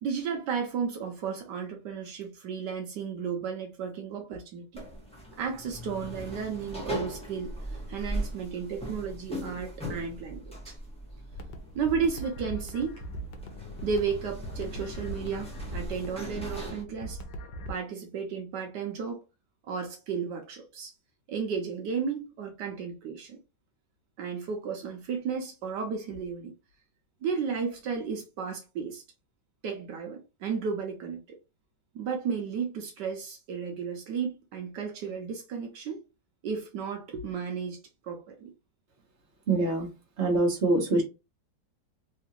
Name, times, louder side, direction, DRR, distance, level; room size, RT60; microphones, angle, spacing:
voice 1, 0.0-4.8 5.4-10.8 11.7-13.0 13.8-17.2 17.7-19.2 19.6-20.9 21.3-23.4 24.2-26.5 27.2-29.0 29.6-31.4 31.9-36.0 36.4-37.8 38.0-38.5, right 6 dB, 75° right, 1.3 m, -33 dB
sound 1, 4.7-16.8, right 1 dB, 5° left, 0.8 m, -39 dB
sound 2, 11.3-17.7, right 1 dB, 75° left, 1.3 m, -40 dB
voice 2, 39.5-39.9 40.2-41.0, right 2 dB, 45° right, 1.2 m, -24 dB
3.6 x 2.4 x 2.9 m
omnidirectional pair, 1.9 m